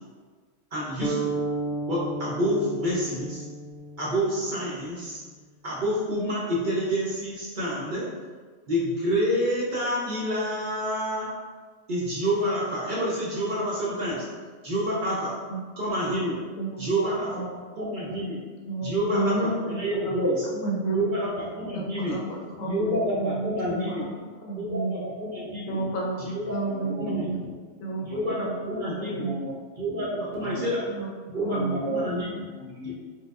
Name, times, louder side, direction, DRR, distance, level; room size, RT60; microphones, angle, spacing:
voice 1, 0.7-1.3 1.9-3.4 4.0-5.2 5.6-8.1 8.7-11.3 11.9-14.2 14.6-15.3 15.8-16.4 16.8-17.3 17.8-18.4 18.8-19.4 19.7-20.5 20.9-22.2 22.6-24.0 24.6-25.6 26.2-26.7 27.0-27.2 28.0-29.2 29.8-30.8 31.3-32.3 32.8-32.9, equal, 55° right, -7 dB, 0.6 m, -28 dB
sound 1, 1.0-4.9, right 2 dB, 55° left, 0.6 m, -33 dB
voice 2, 16.6-17.5 18.7-21.1 21.7-24.1 24.4-25.1 25.7-27.4 27.8-28.0 28.3-28.5 28.8-29.3 30.5-31.1 31.4-32.2, right 3 dB, 75° left, -1 dB, 1.0 m, -32 dB
voice 3, 25.7-26.0 26.7-28.2 29.0-29.8 30.1-30.8 31.5-32.1 32.4-32.9, right 1 dB, 75° right, -1 dB, 1.0 m, -37 dB
4.2 x 2.3 x 2.4 m, 1.5 s
omnidirectional pair, 1.4 m